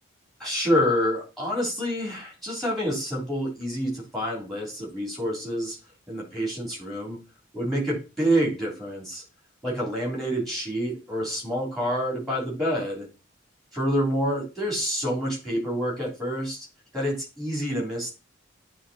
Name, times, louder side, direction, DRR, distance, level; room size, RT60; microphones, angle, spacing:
voice 1, 0.4-5.8 6.1-7.2 7.5-9.2 9.6-13.1 13.7-16.6 16.9-18.1, equal, ahead, -3 dB, 3.2 m, -27 dB
8.9 x 3.4 x 4.2 m, 0.30 s
head